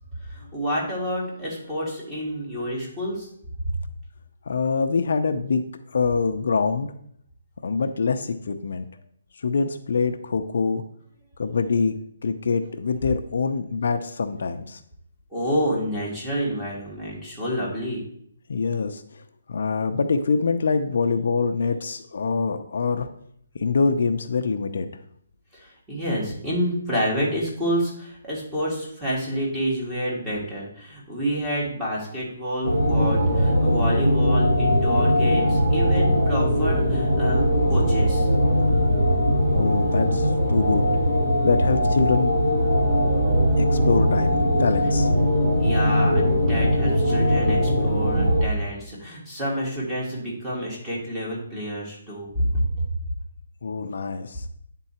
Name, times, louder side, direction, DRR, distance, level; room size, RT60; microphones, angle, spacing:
voice 1, 0.2-3.3 15.3-18.0 25.5-38.3 45.6-52.9, equal, 10° right, -5 dB, 1.5 m, -28 dB
voice 2, 4.5-5.6 5.9-6.9 7.6-8.9 9.4-10.8 11.4-12.0 12.2-14.8 18.5-19.2 19.5-23.1 23.6-24.9 39.5-40.9 41.4-42.3 43.6-45.1 53.6-54.4, left 4 dB, 60° left, 8 dB, 0.5 m, -24 dB
sound 1, 32.6-48.4, equal, 45° right, 1.6 m, -20 dB
9.0 x 3.8 x 4.3 m, 0.67 s
hypercardioid pair, 170°, 0 cm